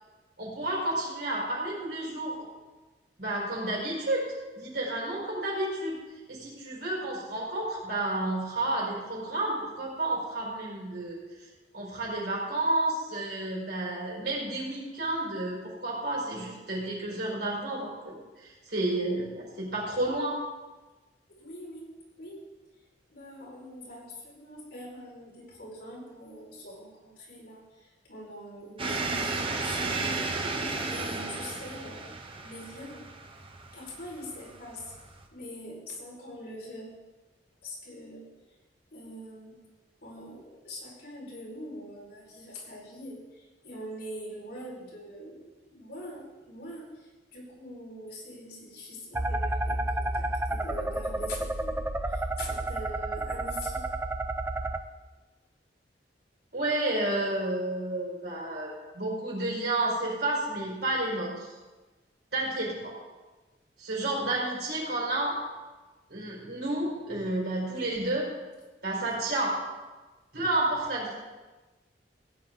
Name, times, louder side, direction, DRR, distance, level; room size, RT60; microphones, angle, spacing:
voice 1, 0.4-2.3 3.2-4.3 4.5-6.0 6.3-11.2 11.7-18.1 18.4-20.4 56.5-61.5 62.3-62.9 63.8-65.4 66.1-68.3 68.8-69.5 70.3-71.1, right 2 dB, 65° right, -4 dB, 4.8 m, -31 dB
voice 2, 21.3-21.9 22.2-22.4 23.1-30.2 30.8-33.1 33.7-34.9 35.3-37.0 37.6-38.3 38.9-39.6 40.0-53.9, left 1 dB, 65° left, -5 dB, 5.0 m, -43 dB
sound 1, 28.8-35.2, right 3 dB, 30° right, 1.1 m, -34 dB
sound 2, 49.1-54.8, right 2 dB, 15° right, 0.4 m, -31 dB
16.0 x 10.0 x 3.9 m, 1.2 s
head